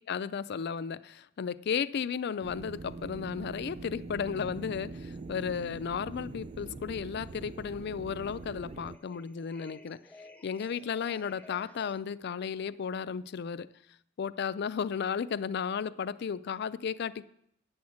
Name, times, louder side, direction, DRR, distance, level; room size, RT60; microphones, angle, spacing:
voice 1, 0.1-10.0 10.4-13.7 14.2-17.3, left 6 dB, 55° left, 0.4 m, -34 dB
sound 1, 2.4-9.0, right 3 dB, 30° right, 0.3 m, -43 dB
sound 2, 4.3-4.8 5.1-12.0, left 1 dB, 10° left, 0.7 m, -53 dB
9.4 x 6.3 x 8.4 m
head